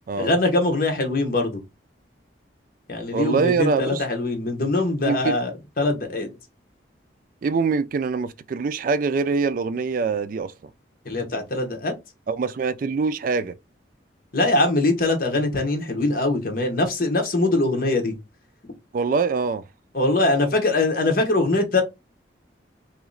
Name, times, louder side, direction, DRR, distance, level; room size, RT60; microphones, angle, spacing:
voice 1, 0.1-1.6 2.9-6.3 11.0-11.9 14.3-18.2 18.6-18.7 19.9-21.8, left 2 dB, 50° left, 1.0 m, -22 dB
voice 2, 3.1-4.1 5.0-5.4 7.4-10.5 12.3-13.6 18.9-19.6, right 4 dB, 50° right, 0.3 m, -24 dB
3.0 x 2.8 x 3.8 m
head